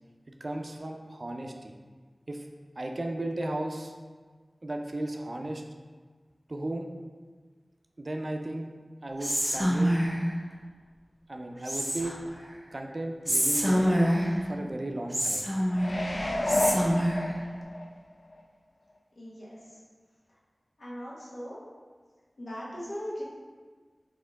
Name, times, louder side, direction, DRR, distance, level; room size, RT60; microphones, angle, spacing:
voice 1, 0.4-1.7 2.3-2.5 2.8-3.9 4.6-5.6 6.5-6.9 8.0-8.7 9.0-10.0 11.3-12.2 12.7-13.9 14.4-15.5, right 1 dB, 55° right, 3 dB, 0.4 m, -35 dB
Whispering, 9.2-10.3 11.7-12.3 13.3-14.4 15.1-16.0 16.5-17.3, equal, 15° right, 0.6 m, -26 dB
sound 1, 15.8-17.8 18.3-18.4, left 1 dB, 55° left, 0.4 m, -29 dB
voice 2, 19.1-19.8 20.8-21.6 22.4-23.2, equal, 80° left, -7 dB, 1.2 m, -39 dB
4.4 x 2.9 x 3.4 m, 1.5 s
wide cardioid pair, 60°, 0 cm